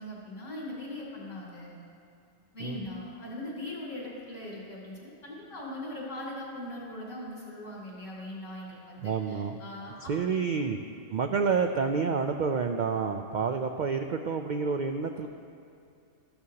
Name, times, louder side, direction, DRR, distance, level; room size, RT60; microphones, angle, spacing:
voice 1, 0.0-1.8 2.5-10.4, left 1 dB, 65° left, -5 dB, 3.6 m, -40 dB
voice 2, 9.0-9.6 10.1-10.8 11.1-15.3, right 5 dB, 85° right, 5 dB, 0.4 m, -29 dB
14.0 x 13.0 x 2.9 m, 2.4 s
omnidirectional pair, 1.4 m